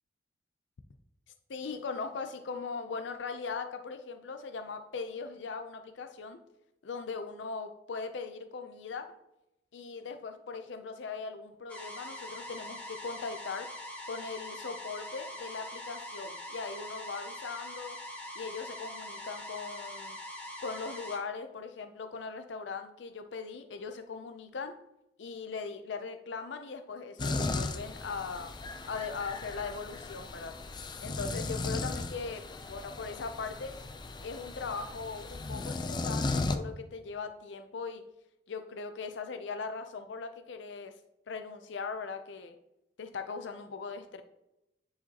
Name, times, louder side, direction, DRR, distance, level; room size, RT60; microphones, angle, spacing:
voice 1, 1.5-6.4 6.8-9.1 9.7-13.7 14.1-18.0 18.4-20.2 20.6-24.7 25.2-28.5 28.8-30.6 31.0-33.8 34.2-38.0 38.5-40.9 41.3-42.6 43.0-44.2, left 4 dB, 90° left, 8 dB, 0.5 m, -39 dB
sound 1, 11.7-21.2, left 1 dB, 10° left, 1.4 m, -43 dB
sound 2, 27.2-36.6, left 3 dB, 25° left, 0.4 m, -36 dB
10.0 x 4.8 x 2.9 m, 0.88 s
head